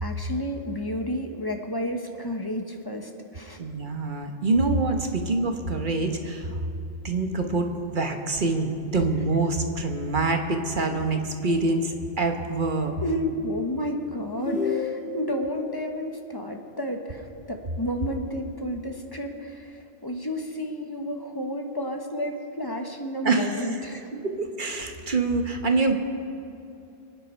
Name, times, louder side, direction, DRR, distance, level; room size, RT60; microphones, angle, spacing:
voice 1, 0.0-3.6 13.0-24.1, equal, 20° left, 3 dB, 1.0 m, -31 dB
voice 2, 3.6-6.5 7.0-12.9 23.2-23.6 24.1-25.9, right 3 dB, 40° right, 4 dB, 1.1 m, -25 dB
sound 1, 14.4-15.4, left 4 dB, 50° left, 2.4 m, -29 dB
25.5 x 9.6 x 4.4 m, 2.7 s
omnidirectional pair, 1.3 m